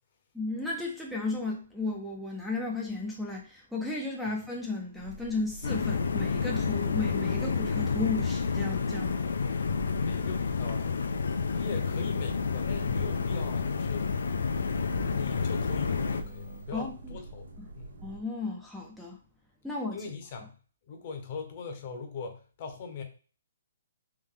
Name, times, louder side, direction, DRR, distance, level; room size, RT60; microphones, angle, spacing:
voice 1, 0.3-9.3 16.7-17.1 18.0-19.2 19.6-20.1, left 3 dB, ahead, -2 dB, 0.5 m, -34 dB
sound 1, 4.9-18.2, right 2 dB, 80° right, 1.1 m, -45 dB
sound 2, 5.6-16.2, left 5 dB, 80° left, 0.4 m, -29 dB
voice 2, 10.0-10.9 11.5-14.1 15.1-17.5 17.7-18.0 19.9-20.5 20.9-23.0, left 5 dB, 40° left, 5 dB, 0.8 m, -40 dB
sound 3, 11.6-16.6, equal, 50° right, 1.6 m, -51 dB
3.6 x 2.5 x 3.6 m, 0.38 s
hypercardioid pair, 155°, 0 cm